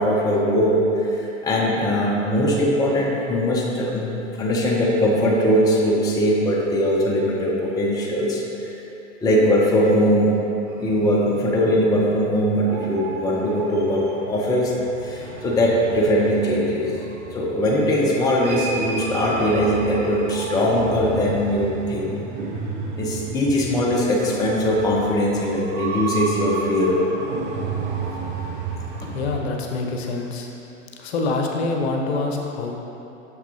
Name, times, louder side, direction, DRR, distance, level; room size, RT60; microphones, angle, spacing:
voice 1, 0.0-8.7 9.2-10.3 10.8-14.7 15.0-16.9 17.3-22.2 23.0-27.0 29.0-29.1, equal, 10° left, -3 dB, 0.6 m, -21 dB
sound 1, 10.7-29.4, right 4 dB, 30° right, 0.7 m, -33 dB
voice 2, 29.1-30.5 31.0-32.7, left 3 dB, 55° left, 1 dB, 0.8 m, -25 dB
6.3 x 5.9 x 2.8 m, 2.9 s
figure-of-eight pair, 100°, 37 cm